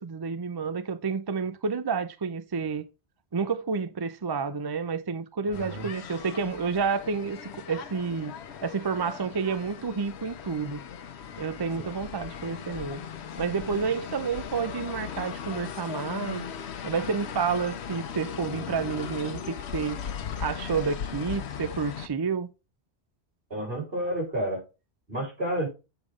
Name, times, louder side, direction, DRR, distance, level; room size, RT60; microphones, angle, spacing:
voice 1, 0.0-2.8 3.3-7.4 7.7-8.3 8.6-10.8 11.4-13.0 13.4-16.4 16.8-20.0 20.4-22.5, right 5 dB, 35° right, 0.3 m, -30 dB
sound 1, 5.5-22.1, left 8 dB, 75° left, 1.0 m, -38 dB
voice 2, 5.5-5.9 11.8-11.9 23.5-24.6 25.1-25.7, equal, 60° right, 4.7 m, -30 dB
8.0 x 3.8 x 4.9 m
omnidirectional pair, 1.1 m